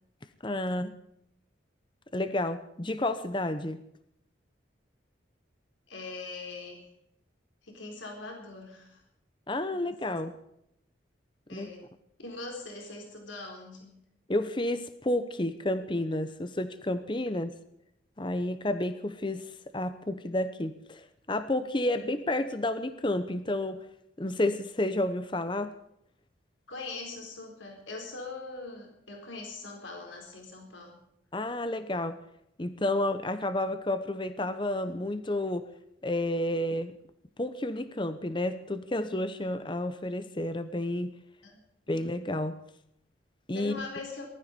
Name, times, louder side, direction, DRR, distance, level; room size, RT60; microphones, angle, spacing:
voice 1, 0.4-0.9 2.1-3.8 9.5-10.3 11.5-11.7 14.3-17.5 18.2-23.8 24.2-25.7 31.3-32.2 32.6-35.7 36.0-37.0 37.4-41.2 41.9-42.6 43.5-43.8, left 1 dB, 25° left, 11 dB, 0.8 m, -31 dB
voice 2, 5.9-6.9 7.6-9.0 9.7-9.8 10.1-10.2 11.5-11.9 12.2-14.0 26.7-31.0 41.4-42.0 43.5-44.3, left 3 dB, 80° left, 2 dB, 4.3 m, -42 dB
19.5 x 13.0 x 5.3 m, 0.77 s
head